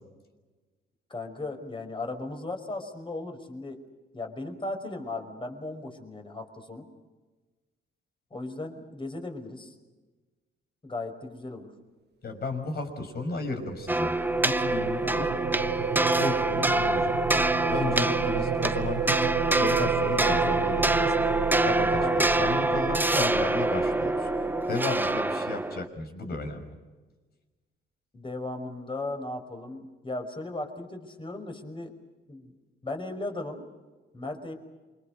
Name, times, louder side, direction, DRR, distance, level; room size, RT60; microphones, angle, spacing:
voice 1, 1.1-3.8 4.1-6.9 8.3-9.7 10.8-11.7 15.0-15.2 22.0-22.2 28.1-31.9 32.3-32.5 32.8-33.7 34.1-34.5, left 2 dB, 25° left, 5 dB, 5.4 m, -36 dB
voice 2, 12.2-14.1 14.4-15.3 16.2-17.1 17.7-19.0 19.5-21.1 21.6-24.3 24.7-26.7, left 3 dB, 55° left, 6 dB, 6.0 m, -33 dB
sound 1, 13.3-25.5, right 8 dB, 55° right, 1.6 m, -32 dB
sound 2, 13.9-25.9, right 2 dB, 10° right, 0.8 m, -26 dB
28.5 x 24.5 x 6.5 m, 1.3 s
cardioid pair, 90°, 20 cm